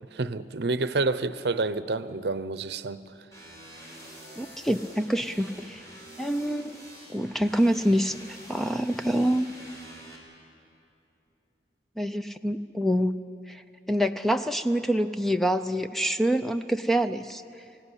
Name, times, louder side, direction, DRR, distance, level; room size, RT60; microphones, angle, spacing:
voice 1, 0.0-3.0, right 3 dB, 70° right, 14 dB, 0.7 m, -29 dB
sound 1, 3.3-10.2, equal, 20° left, 4.8 m, -46 dB
voice 2, 4.4-5.8 6.2-6.7 7.1-9.5 12.0-13.2 13.5-13.6 13.9-17.4, equal, ahead, 9 dB, 0.5 m, -26 dB
23.5 x 17.0 x 9.9 m, 2.7 s
head